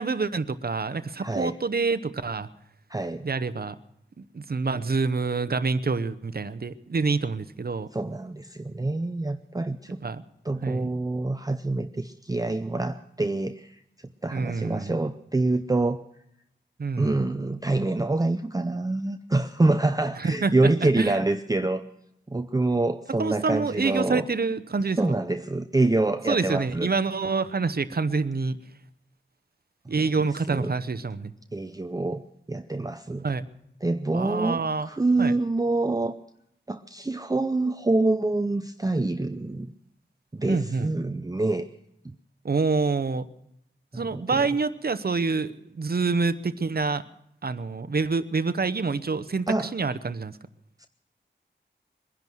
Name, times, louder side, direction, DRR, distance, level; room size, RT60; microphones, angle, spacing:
voice 1, 0.0-2.5 3.2-3.8 4.2-7.9 10.0-10.2 10.6-10.9 14.3-14.9 16.8-17.2 20.2-21.2 23.2-25.0 26.3-28.6 29.9-31.3 33.2-33.5 34.1-34.9 35.2-35.3 40.5-40.9 42.4-43.3 43.9-47.0 47.4-50.4, right 4 dB, 50° right, 13 dB, 0.8 m, -27 dB
voice 2, 1.2-1.6 2.9-3.3 7.9-10.0 10.4-13.8 14.2-16.0 17.0-21.8 22.3-24.3 25.0-26.9 29.9-30.7 31.5-33.3 33.8-36.2 36.7-39.7 40.3-41.7 42.0-42.2 43.9-44.5 49.5-49.7 50.8-50.9, right 2 dB, 20° right, 9 dB, 0.6 m, -26 dB
22.0 x 10.5 x 6.2 m, 0.76 s
wide cardioid pair, 65°, 20 cm